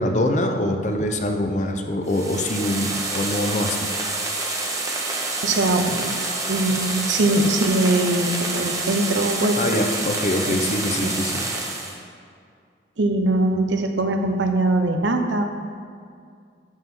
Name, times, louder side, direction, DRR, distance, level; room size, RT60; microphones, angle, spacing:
voice 1, 0.0-3.9 9.5-11.4, left 1 dB, 40° left, 4 dB, 0.7 m, -24 dB
sound 1, 2.0-12.0, right 2 dB, 15° right, 1.0 m, -27 dB
voice 2, 5.4-6.1 6.5-9.7 10.5-10.7 11.0-11.1 13.0-15.4, right 2 dB, 85° right, 5 dB, 0.8 m, -22 dB
11.5 x 7.7 x 3.8 m, 2.2 s
head